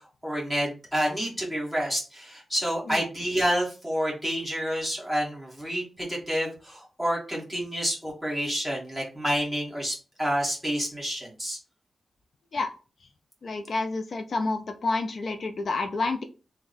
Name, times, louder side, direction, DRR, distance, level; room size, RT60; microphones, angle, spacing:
voice 1, 0.2-11.6, equal, ahead, -4 dB, 1.5 m, -29 dB
voice 2, 13.4-16.2, left 3 dB, 55° left, 6 dB, 0.4 m, -29 dB
3.5 x 2.1 x 3.9 m, 0.33 s
wide cardioid pair, 125°, 0 cm